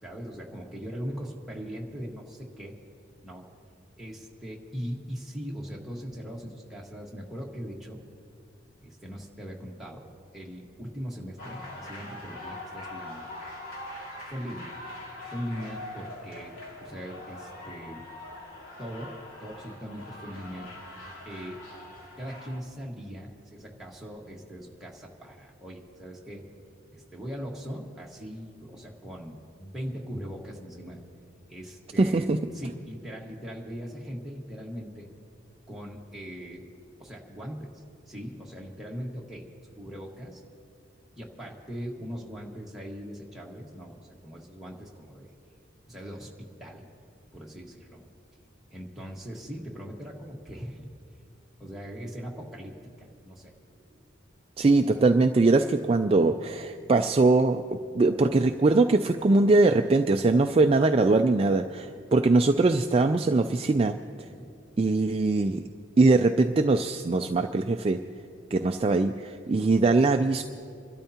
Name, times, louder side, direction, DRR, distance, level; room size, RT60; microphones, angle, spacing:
voice 1, 0.0-2.7 3.2-3.4 4.0-8.0 8.8-10.0 10.3-13.2 14.2-14.7 15.3-18.0 18.8-20.7 21.2-21.6 22.2-26.4 26.9-31.0 31.5-32.3 32.5-35.1 35.7-36.6 37.0-39.5 39.8-40.4 41.2-45.3 45.9-46.9 47.3-48.0 48.7-50.9 51.6-54.1 64.3-64.5, equal, ahead, -4 dB, 1.6 m, -40 dB
sound 1, 11.4-22.6, left 1 dB, 90° left, 2.3 m, -43 dB
voice 2, 32.0-32.4 54.6-57.6 57.9-64.0 64.8-65.6 66.0-68.0 68.5-70.4, right 3 dB, 30° right, 6 dB, 0.3 m, -22 dB
28.5 x 12.5 x 2.9 m, 2.4 s
head